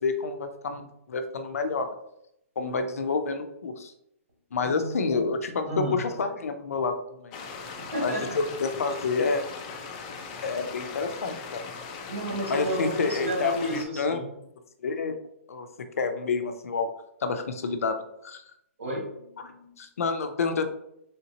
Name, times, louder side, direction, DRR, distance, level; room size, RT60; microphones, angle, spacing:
voice 1, 0.0-2.0 2.6-3.9 4.5-7.5 8.0-9.4 10.4-11.6 12.5-14.2 14.8-15.2 15.5-16.9 17.2-18.4 19.4-19.5 19.8-20.6, left 4 dB, 85° left, 8 dB, 0.5 m, -29 dB
voice 2, 4.6-5.1 5.7-6.0 6.7-6.8 7.8-8.3 12.1-14.3 18.8-19.7, right 1 dB, 80° right, -2 dB, 1.3 m, -32 dB
sound 1, 7.3-13.9, left 5 dB, 25° left, 0.4 m, -39 dB
3.6 x 2.8 x 2.8 m, 0.78 s
hypercardioid pair, 165°, 8 cm